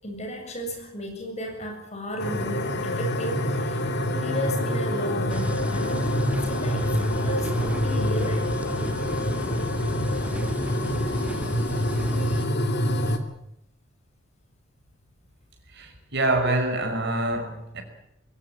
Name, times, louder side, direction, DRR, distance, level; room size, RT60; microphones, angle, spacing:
voice 1, 0.0-3.8 4.1-8.5 12.3-12.4, right 1 dB, 30° left, 7.1 m, -34 dB
sound 1, 2.2-13.2, left 1 dB, 50° left, 2.6 m, -26 dB
sound 2, 5.3-12.5, right 1 dB, 5° right, 0.7 m, -36 dB
voice 2, 15.7-17.8, right 2 dB, 55° right, 5.5 m, -26 dB
22.0 x 17.0 x 8.8 m
head